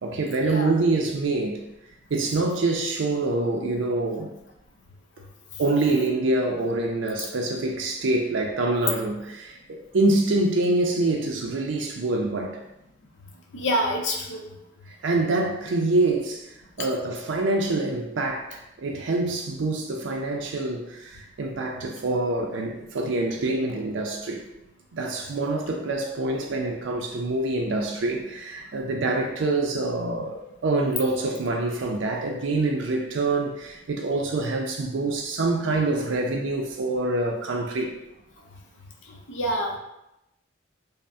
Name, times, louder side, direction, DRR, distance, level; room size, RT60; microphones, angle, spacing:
voice 1, 0.0-1.6 2.1-4.3 5.6-12.6 14.9-24.5 24.9-38.0, right 2 dB, 75° right, 1 dB, 0.4 m, -26 dB
voice 2, 13.5-14.4 39.3-39.8, equal, 70° left, 0 dB, 0.6 m, -26 dB
5.4 x 2.1 x 2.6 m, 0.88 s
head